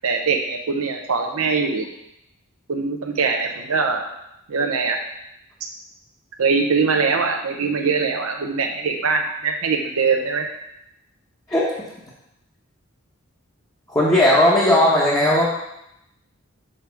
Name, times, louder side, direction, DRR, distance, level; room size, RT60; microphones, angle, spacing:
voice 1, 0.0-1.9 2.7-4.0 4.5-5.0 6.4-10.5, right 4 dB, 85° right, 3 dB, 0.6 m, -22 dB
voice 2, 13.9-15.5, left 1 dB, 15° left, -7 dB, 1.0 m, -16 dB
6.5 x 3.4 x 5.7 m, 0.83 s
head